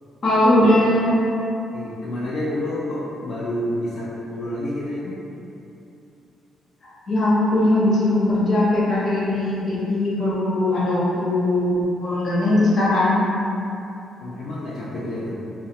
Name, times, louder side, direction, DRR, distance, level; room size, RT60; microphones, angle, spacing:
voice 1, 0.2-1.2 7.1-13.2, left 1 dB, 50° left, -8 dB, 0.8 m, -19 dB
voice 2, 1.7-5.2 14.2-15.3, left 1 dB, 75° left, -8 dB, 0.3 m, -29 dB
2.7 x 2.0 x 2.8 m, 2.8 s
cardioid pair, 90°, 0 cm